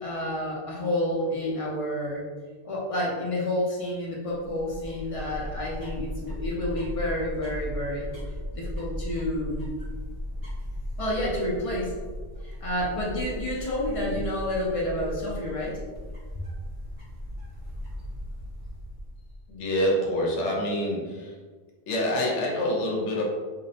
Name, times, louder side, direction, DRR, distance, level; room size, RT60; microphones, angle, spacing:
voice 1, 0.0-2.3 2.6-8.1 8.5-9.7 11.0-11.9 12.4-15.8, left 1 dB, 50° left, -5 dB, 0.4 m, -29 dB
sound 1, 4.3-19.5, left 1 dB, 35° right, 0.7 m, -37 dB
voice 2, 19.5-21.4 21.9-23.2, left 1 dB, 85° left, -1 dB, 0.9 m, -26 dB
2.4 x 2.0 x 2.7 m, 1.5 s
omnidirectional pair, 1.2 m